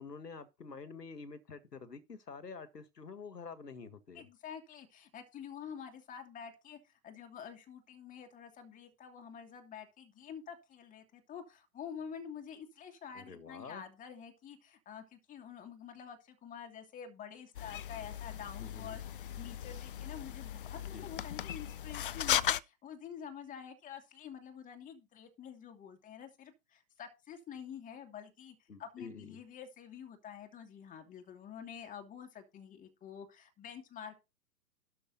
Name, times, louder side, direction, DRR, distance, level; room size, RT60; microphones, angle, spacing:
voice 1, 0.0-4.3 13.1-13.8 18.6-19.0 20.7-21.1 28.7-29.4, left 5 dB, 80° left, 1.8 m, -48 dB
voice 2, 4.1-34.1, left 8 dB, 15° left, 2.4 m, -48 dB
sound 1, 17.5-22.6, left 10 dB, 35° left, 0.4 m, -37 dB
12.5 x 5.9 x 4.1 m
figure-of-eight pair, 115°, 48 cm